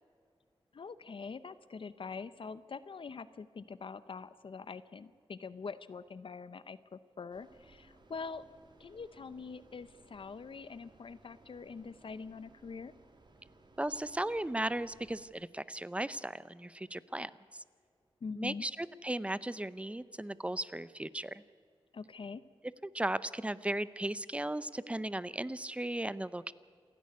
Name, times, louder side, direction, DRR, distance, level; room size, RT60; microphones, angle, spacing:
voice 1, 0.7-8.5 8.8-12.9 18.2-18.6 21.9-22.4, left 5 dB, 60° left, 14 dB, 0.7 m, -44 dB
sound 1, 7.3-15.3, right 2 dB, 50° right, 2.5 m, -62 dB
voice 2, 13.8-17.6 18.4-21.4 22.8-26.5, right 1 dB, 10° right, 16 dB, 0.6 m, -36 dB
28.0 x 11.0 x 9.4 m, 2.2 s
wide cardioid pair, 120°, 10 cm